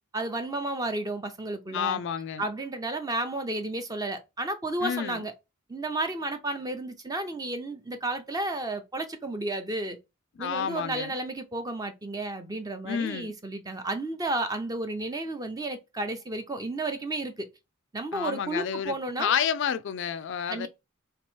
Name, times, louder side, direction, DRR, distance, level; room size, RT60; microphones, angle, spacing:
voice 1, 0.1-2.0 2.4-5.3 5.7-10.0 10.4-17.5 17.9-19.3 20.5-20.7, right 2 dB, 15° right, 0.5 m, -32 dB
voice 2, 1.7-2.5 4.8-5.2 10.4-11.1 12.8-13.3 18.1-20.7, left 8 dB, 55° left, 0.3 m, -30 dB
3.4 x 3.0 x 4.4 m
head